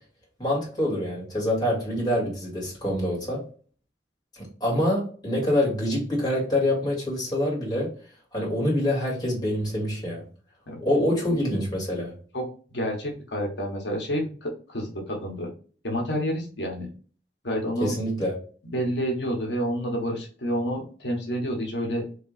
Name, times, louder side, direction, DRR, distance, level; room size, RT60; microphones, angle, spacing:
voice 1, 0.4-3.4 4.3-7.9 8.3-10.2 10.8-12.1 17.8-18.3, left 1 dB, 25° left, -4 dB, 1.9 m, -26 dB
voice 2, 12.7-15.5 15.8-16.9 17.4-17.9 18.6-22.0, equal, 85° left, 0 dB, 1.0 m, -29 dB
3.2 x 2.9 x 4.0 m, 0.42 s
head